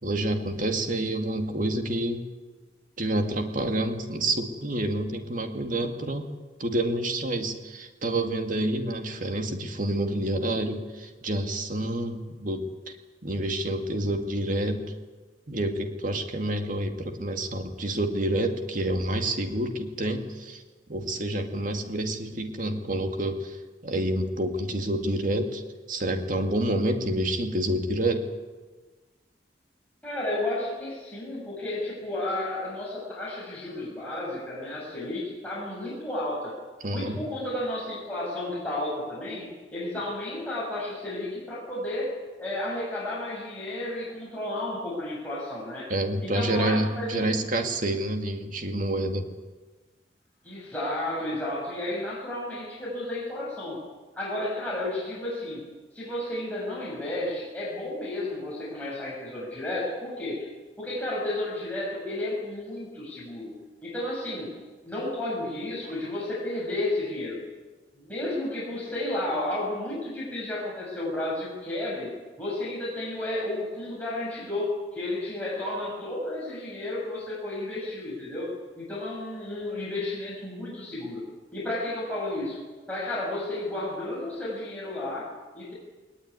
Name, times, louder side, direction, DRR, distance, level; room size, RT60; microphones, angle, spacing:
voice 1, 0.0-2.3 3.0-6.3 6.6-12.9 13.2-14.9 15.5-20.6 20.9-23.6 23.8-25.6 25.9-28.3 36.8-37.2 45.9-49.3, right 1 dB, 50° right, 5 dB, 2.4 m, -28 dB
voice 2, 30.0-36.6 36.9-45.9 46.2-47.3 50.4-53.8 54.2-55.7 55.9-60.5 60.8-63.5 63.8-64.5 64.8-67.4 67.9-72.1 72.4-81.2 81.5-82.6 82.9-85.7, left 1 dB, 10° left, -6 dB, 6.0 m, -32 dB
20.0 x 19.5 x 9.8 m, 1.3 s
head